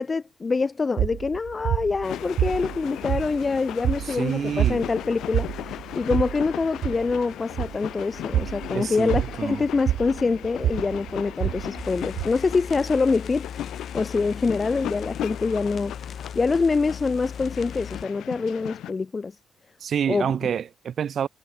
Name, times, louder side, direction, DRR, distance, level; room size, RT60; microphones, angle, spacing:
voice 1, 0.0-13.5 13.9-15.9 16.3-19.3 20.1-20.3, left 4 dB, 30° left, 1.6 m, -25 dB
sound 1, 1.0-13.0, right 11 dB, 75° right, 1.1 m, -29 dB
sound 2, 2.0-18.9, left 12 dB, 80° left, 1.1 m, -37 dB
voice 2, 4.0-4.8 8.7-9.6 19.8-21.3, right 8 dB, 55° right, 1.7 m, -27 dB
sound 3, 11.8-18.0, left 7 dB, 50° left, 2.3 m, -38 dB
cardioid pair, 90°, 0 cm